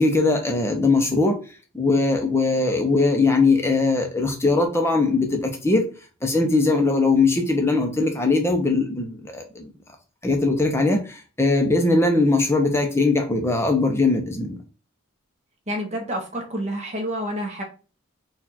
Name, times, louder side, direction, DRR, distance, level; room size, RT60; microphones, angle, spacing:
voice 1, 0.0-1.4 1.7-5.8 6.2-9.7 10.2-14.6, left 3 dB, 10° left, 3 dB, 0.8 m, -20 dB
voice 2, 15.7-17.6, equal, 30° right, 1 dB, 1.1 m, -28 dB
4.4 x 2.6 x 4.3 m, 0.35 s
head